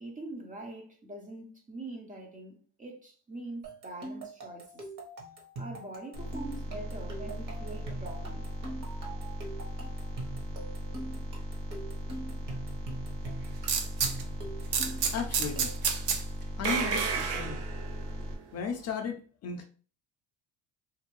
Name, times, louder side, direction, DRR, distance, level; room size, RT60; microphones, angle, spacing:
voice 1, 0.0-4.9 5.6-8.5, right 2 dB, 20° right, 0.4 m, -43 dB
sound 1, 3.6-15.9, right 2 dB, 45° right, 1.0 m, -43 dB
sound 2, 6.1-18.4, equal, 80° right, 1.1 m, -38 dB
sound 3, 13.7-14.2 14.7-16.2 16.6-18.0, right 6 dB, 60° right, 0.7 m, -30 dB
voice 2, 15.1-15.7 16.6-17.6 18.5-19.6, left 5 dB, 40° left, 0.4 m, -35 dB
2.6 x 2.5 x 2.9 m
cardioid pair, 135°, 42 cm